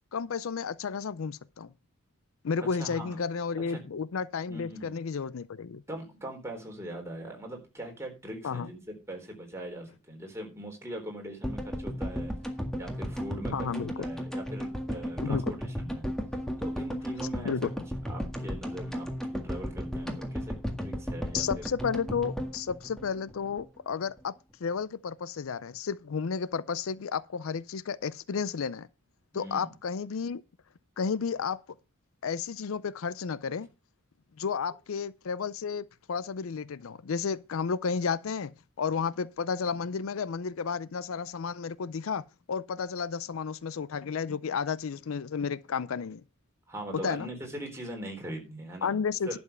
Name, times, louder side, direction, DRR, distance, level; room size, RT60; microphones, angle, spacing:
voice 1, 0.1-1.7 2.4-5.8 8.4-8.7 13.5-14.1 15.2-15.4 17.4-17.7 21.3-24.3 24.6-28.9 29.3-30.4 31.0-31.6 32.2-33.7 34.4-46.2 47.0-47.3 48.8-49.4, left 6 dB, 85° left, 0.5 m, -32 dB
voice 2, 2.6-3.2 3.6-3.8 4.5-5.0 5.9-12.3 12.8-16.1 16.6-17.7 18.0-21.7 29.3-29.7 46.7-49.4, right 1 dB, 15° right, 4.0 m, -41 dB
sound 1, 11.4-23.7 23.9-24.0 24.2-24.3, equal, 5° left, 1.8 m, -35 dB
11.5 x 7.1 x 5.5 m
head